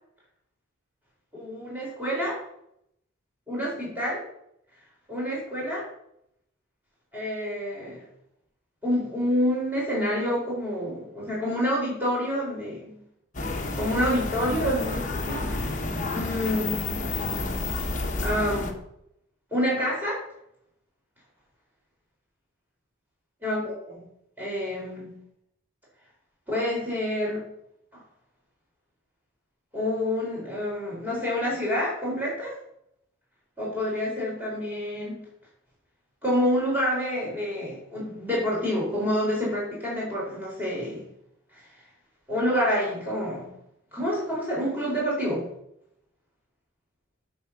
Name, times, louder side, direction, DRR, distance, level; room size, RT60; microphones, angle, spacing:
voice 1, 1.3-2.4 3.5-4.2 5.1-5.9 7.1-8.0 8.8-13.0 13.7-15.8 16.1-16.8 18.2-18.7 19.5-20.2 23.4-24.0 24.4-25.2 26.5-27.5 27.9-28.0 29.7-32.6 33.6-35.2 36.2-41.0 41.5-41.6 42.3-43.5 43.9-45.5, equal, 10° right, -5 dB, 4.5 m, -28 dB
sound 1, 13.3-18.7, left 2 dB, 35° left, 1.0 m, -30 dB
9.0 x 6.2 x 5.9 m, 0.77 s
head